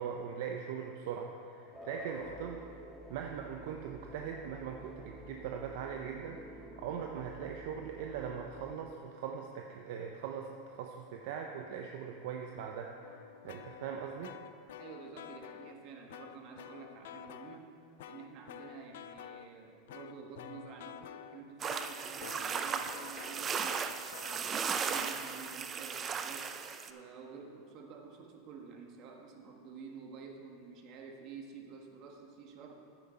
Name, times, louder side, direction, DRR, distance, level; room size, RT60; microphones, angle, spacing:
voice 1, 0.0-2.6 3.1-13.2 13.4-14.3, right 7 dB, 70° right, 2 dB, 0.7 m, -41 dB
sound 1, 1.7-8.8, equal, 5° right, 1.5 m, -49 dB
sound 2, 13.0-15.8 16.1-17.6 18.0-19.5 19.9-26.9, left 10 dB, 80° left, 0.4 m, -51 dB
voice 2, 14.8-17.7 18.1-23.9 24.2-26.5 26.9-32.8, right 5 dB, 50° right, 2 dB, 1.5 m, -50 dB
sound 3, 21.6-26.9, right 6 dB, 30° right, 0.5 m, -36 dB
9.3 x 9.3 x 4.4 m, 2.4 s
supercardioid pair, 120°, 0 cm